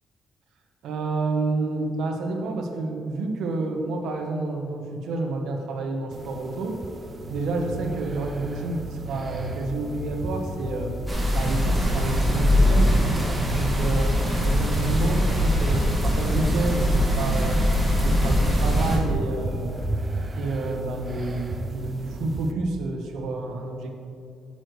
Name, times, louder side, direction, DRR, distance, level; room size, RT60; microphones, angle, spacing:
voice 1, 0.8-6.8 7.3-10.9 11.3-13.0 13.5-14.1 14.4-17.6 18.0-19.8 20.4-23.9, right 2 dB, 85° right, 3 dB, 1.0 m, -29 dB
sound 1, 6.1-22.5, right 2 dB, 30° right, 0.5 m, -37 dB
sound 2, 7.2-22.5, equal, 90° left, 0.9 m, -38 dB
sound 3, 11.1-19.0, equal, 10° right, 2.0 m, -22 dB
9.6 x 7.9 x 3.2 m, 2.5 s
cardioid pair, 115°, 0 cm